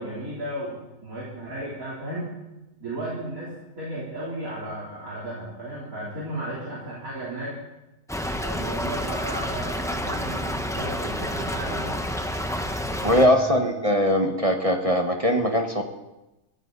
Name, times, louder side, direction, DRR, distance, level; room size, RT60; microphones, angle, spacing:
voice 1, 0.0-2.3 2.8-7.6 8.4-11.9 13.1-13.6, right 1 dB, 60° right, -7 dB, 4.0 m, -34 dB
Stream / Trickle dribble, 8.1-13.3, equal, 5° left, 0.7 m, -29 dB
voice 2, 13.0-15.8, equal, 25° right, 2 dB, 1.2 m, -21 dB
22.5 x 15.0 x 4.0 m, 0.99 s
omnidirectional pair, 1.6 m